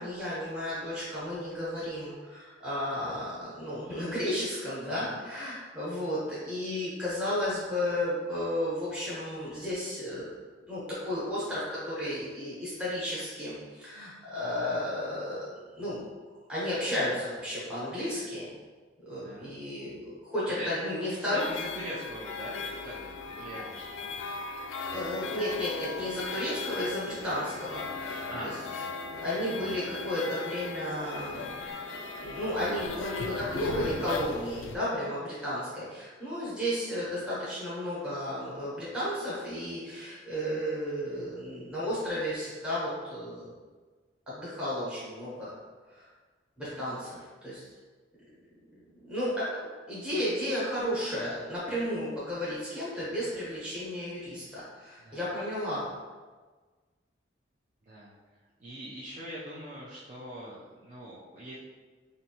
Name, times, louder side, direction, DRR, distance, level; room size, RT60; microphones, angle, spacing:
voice 1, 0.0-10.3 10.7-15.5 15.7-16.0 16.5-18.5 19.1-21.5 24.9-28.5 29.2-43.5 44.3-45.5 45.9-46.1 46.6-47.7 49.0-55.9, left 1 dB, 5° right, -10 dB, 0.9 m, -33 dB
voice 2, 4.8-5.2 19.2-19.5 20.6-20.8 21.1-24.3 26.1-26.2 28.3-28.6 55.0-55.2 57.8-61.6, equal, 40° right, -7 dB, 0.5 m, -42 dB
sound 1, 21.4-34.8, left 4 dB, 85° left, 0.4 m, -38 dB
4.3 x 2.6 x 2.8 m, 1.4 s
head